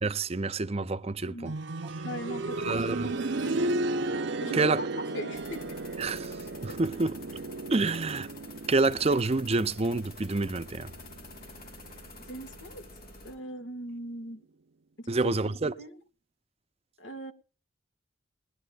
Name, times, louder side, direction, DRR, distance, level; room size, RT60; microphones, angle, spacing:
voice 1, 0.0-1.5 2.6-3.1 4.5-4.8 6.0-6.4 6.6-7.1 7.7-8.3 8.7-10.9 15.1-15.7, right 3 dB, 35° right, 0.6 m, -27 dB
voice 2, 1.2-1.6 2.0-3.7 4.4-6.1 12.2-12.9 13.2-14.4 15.0-15.5 15.8-16.0 17.0-17.3, equal, 90° left, 2.0 m, -40 dB
sound 1, 1.5-12.2 12.5-12.6 13.5-13.6, right 2 dB, 65° right, 0.8 m, -35 dB
sound 2, 5.3-13.4, left 2 dB, 50° left, 3.8 m, -48 dB
20.5 x 12.0 x 2.4 m
head